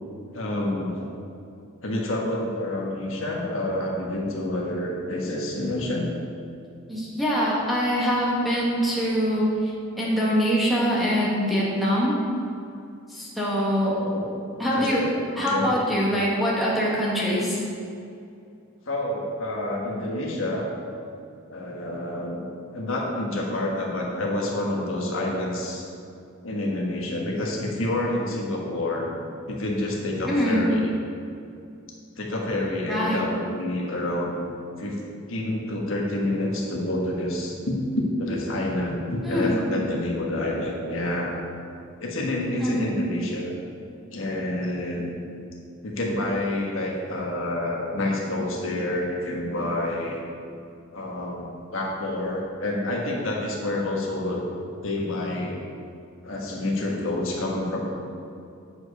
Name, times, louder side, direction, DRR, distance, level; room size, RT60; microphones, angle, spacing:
voice 1, 0.3-1.1 1.8-6.1 14.0-14.3 14.6-15.8 18.9-20.7 21.5-22.4 22.7-25.8 26.4-29.1 29.4-30.9 32.2-34.4 34.8-35.0 35.3-41.3 42.0-43.5 44.1-45.2 45.8-50.2 50.9-54.5 54.8-55.6 56.2-57.8, left 1 dB, 70° left, -2 dB, 1.4 m, -28 dB
voice 2, 6.9-9.7 10.0-12.2 13.1-14.0 14.6-15.0 15.4-17.6 30.3-30.7 32.9-33.2 39.2-39.6 42.6-42.8, equal, ahead, -6 dB, 1.5 m, -23 dB
8.9 x 4.9 x 5.5 m, 2.5 s
head